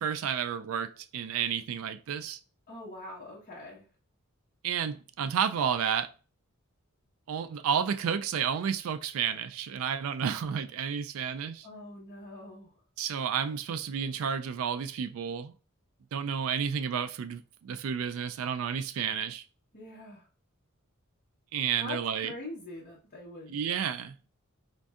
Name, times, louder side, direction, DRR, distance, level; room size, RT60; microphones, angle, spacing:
voice 1, 0.0-2.4 4.6-6.1 7.3-11.7 13.0-15.5 16.1-19.4 21.5-22.3 23.5-24.2, right 7 dB, 65° right, 0.3 m, -31 dB
voice 2, 2.7-3.9 11.6-12.7 19.7-20.3 21.8-23.6, left 2 dB, 40° left, 1.1 m, -43 dB
5.2 x 2.6 x 2.3 m
head